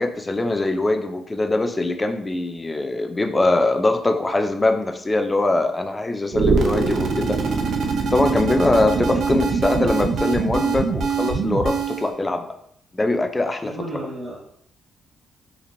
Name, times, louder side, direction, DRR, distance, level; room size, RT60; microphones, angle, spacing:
voice 1, 0.0-7.4 8.1-12.5 12.9-13.8, left 2 dB, 20° left, 6 dB, 0.4 m, -22 dB
sound 1, 6.3-12.1, right 5 dB, 65° right, 0.6 m, -23 dB
voice 2, 13.6-14.5, right 1 dB, 5° right, -6 dB, 1.4 m, -33 dB
4.1 x 2.9 x 2.6 m, 0.70 s
cardioid pair, 90°, 0 cm